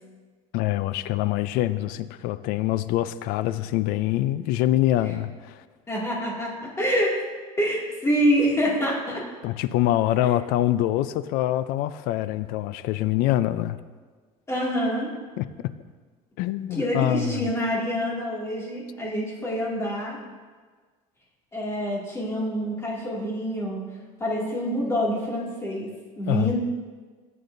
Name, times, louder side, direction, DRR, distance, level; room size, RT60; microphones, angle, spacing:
voice 1, 0.5-5.6 9.4-13.8 15.4-15.7 16.4-17.5 26.3-26.5, left 14 dB, 70° left, 14 dB, 0.5 m, -25 dB
voice 2, 5.9-7.2 7.6-9.2 14.5-15.1 16.7-20.2 21.5-23.9 24.2-26.6, equal, 15° left, -4 dB, 2.2 m, -26 dB
14.5 x 8.6 x 2.6 m, 1.5 s
cardioid pair, 140°, 16 cm